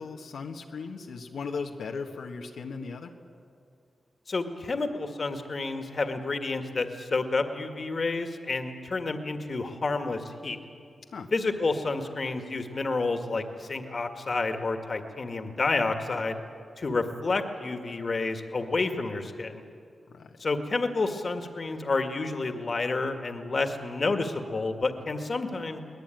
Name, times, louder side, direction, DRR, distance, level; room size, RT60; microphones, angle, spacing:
voice 1, 0.0-3.1 11.1-11.3 20.1-20.4, left 5 dB, 85° left, 2 dB, 1.6 m, -37 dB
voice 2, 4.3-10.6 11.3-16.4 16.8-19.6 20.4-25.8, left 3 dB, 45° left, 6 dB, 1.9 m, -29 dB
23.0 x 19.5 x 9.2 m, 2.4 s
wide cardioid pair, 90°, 0 cm